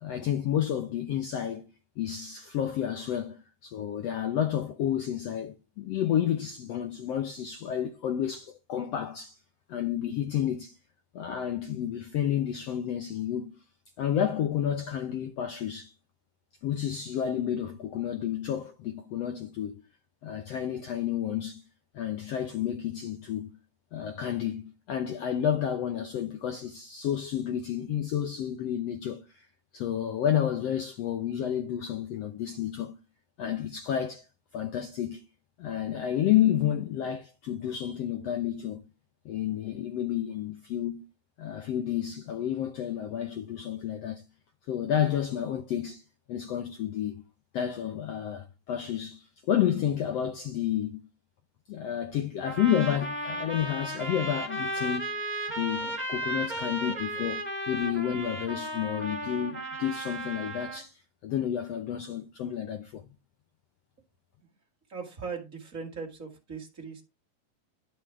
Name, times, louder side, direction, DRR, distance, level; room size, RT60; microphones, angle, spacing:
voice 1, 0.0-1.7 2.0-9.4 9.7-10.8 11.1-13.5 14.0-15.9 16.6-19.8 20.2-21.6 21.9-23.5 23.9-29.5 29.7-32.9 33.4-34.2 34.5-35.2 35.6-38.8 39.2-41.0 41.4-44.2 44.7-46.0 46.3-47.2 47.5-51.0 51.7-55.1 55.5-57.4 57.7-63.0, left 10 dB, 75° left, 1.4 m, -30 dB
sound 1, 52.4-60.8, right 1 dB, 5° left, 2.4 m, -35 dB
voice 2, 55.8-56.2 56.5-57.3 64.9-67.0, right 5 dB, 30° right, 2.0 m, -41 dB
12.0 x 5.6 x 4.6 m
omnidirectional pair, 4.0 m